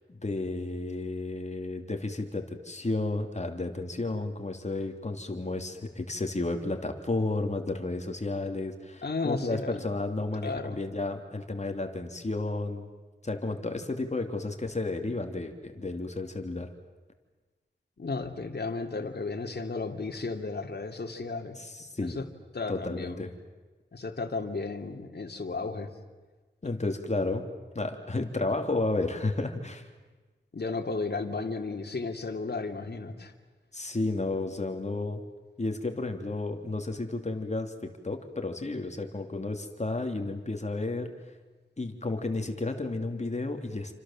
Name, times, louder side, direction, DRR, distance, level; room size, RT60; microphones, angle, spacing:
voice 1, 0.1-12.9 13.2-16.7 21.6-22.2 22.7-23.3 26.6-27.5 27.7-29.9 33.7-35.2 35.6-41.1 41.8-43.9, left 2 dB, 40° left, 5 dB, 3.1 m, -32 dB
voice 2, 9.0-9.8 10.4-10.8 18.0-21.6 22.0-22.2 22.5-23.3 23.9-25.9 30.5-33.3, left 3 dB, 60° left, 4 dB, 2.9 m, -34 dB
29.0 x 26.0 x 7.5 m, 1.3 s
wide cardioid pair, 75°, 19 cm